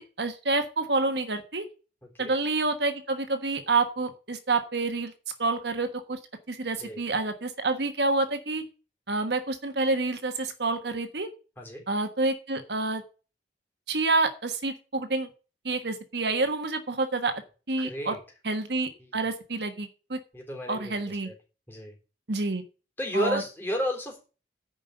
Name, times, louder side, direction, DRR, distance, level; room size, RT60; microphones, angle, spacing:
voice 1, 0.0-1.6 2.2-5.1 5.4-6.2 6.5-8.6 9.1-11.3 11.9-13.0 13.9-15.3 15.6-17.3 17.7-18.1 18.4-20.2 20.7-21.3 22.3-22.6 23.1-23.4, right 3 dB, 65° right, 8 dB, 1.3 m, -28 dB
voice 2, 2.0-2.3 6.7-7.0 11.6-11.8 17.8-18.2 19.0-19.1 20.3-21.3 21.7-22.0 23.0-24.3, equal, 10° left, 1 dB, 3.5 m, -32 dB
9.9 x 5.3 x 7.9 m, 0.34 s
head